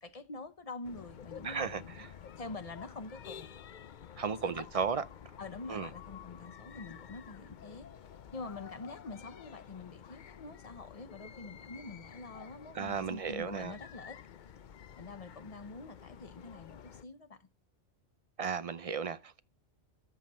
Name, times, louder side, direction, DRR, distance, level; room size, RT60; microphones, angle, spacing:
voice 1, 0.0-2.1 2.4-3.5 4.4-4.8 5.4-7.9 8.3-14.2 15.0-17.5, left 3 dB, 35° left, 0.9 m, -46 dB
sound 1, 0.8-17.0, left 8 dB, 50° left, 0.6 m, -51 dB
voice 2, 1.4-2.1 4.2-5.0 5.7-5.9 12.7-13.7 18.4-19.4, right 6 dB, 45° right, 0.4 m, -35 dB
13.5 x 5.4 x 4.2 m
omnidirectional pair, 1.2 m